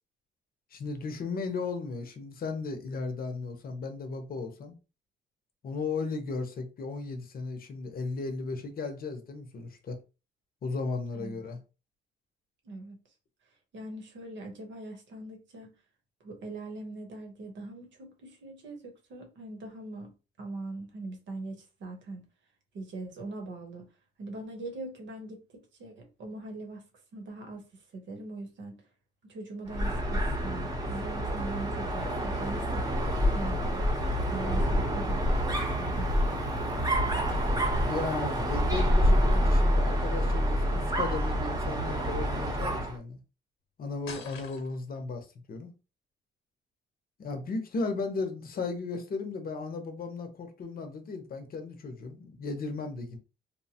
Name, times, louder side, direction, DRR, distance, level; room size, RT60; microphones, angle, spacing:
voice 1, 0.7-4.7 5.6-10.0 10.6-11.6 37.8-43.2 43.8-45.7 47.2-53.2, left 3 dB, 50° left, 0.7 m, -35 dB
voice 2, 12.6-13.0 13.7-15.8 16.2-20.1 20.4-22.2 22.7-23.9 24.2-26.9 27.1-28.7 29.2-32.8 33.3-33.9 34.3-36.4 47.8-47.9, right 2 dB, 70° right, 1.0 m, -41 dB
Dog, 29.7-43.0, equal, 20° right, 0.8 m, -27 dB
sound 1, 44.1-45.0, left 5 dB, 85° left, 0.9 m, -44 dB
3.0 x 2.1 x 2.8 m
cardioid pair, 90°, 20 cm